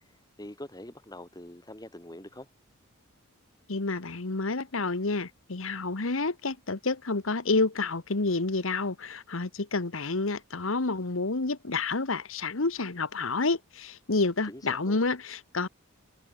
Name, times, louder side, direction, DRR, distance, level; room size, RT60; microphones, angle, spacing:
voice 1, 0.4-2.5 14.5-15.0, left 1 dB, 20° left, 3.7 m, -44 dB
voice 2, 3.7-15.7, left 3 dB, 70° left, 1.3 m, -29 dB
head